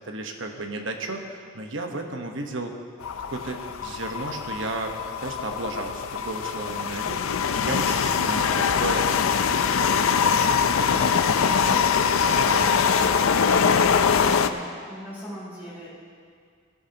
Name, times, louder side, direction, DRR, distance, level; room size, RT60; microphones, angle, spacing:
voice 1, 0.0-2.7 3.3-9.5 9.7-12.0 12.3-12.8, right 2 dB, 65° right, 3 dB, 1.2 m, -34 dB
sound 1, 3.0-14.5, left 6 dB, 85° left, 0.5 m, -23 dB
voice 2, 14.1-15.9, equal, 10° right, -10 dB, 3.2 m, -40 dB
18.5 x 12.5 x 2.9 m, 2.1 s
head